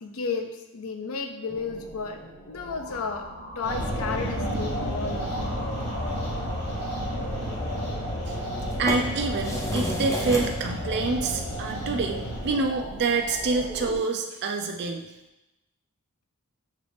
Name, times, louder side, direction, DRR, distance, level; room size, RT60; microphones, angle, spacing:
voice 1, 0.0-3.3 3.6-5.5, left 4 dB, 65° left, 5 dB, 0.5 m, -33 dB
sound 1, 1.5-14.0, right 1 dB, 40° left, 1.4 m, -40 dB
sound 2, 3.6-12.8, equal, 85° left, 1.1 m, -31 dB
sound 3, 8.5-13.7, left 1 dB, 15° left, 0.6 m, -35 dB
voice 2, 8.8-15.0, right 3 dB, 50° right, 3 dB, 0.4 m, -27 dB
6.4 x 2.4 x 3.4 m, 0.95 s
head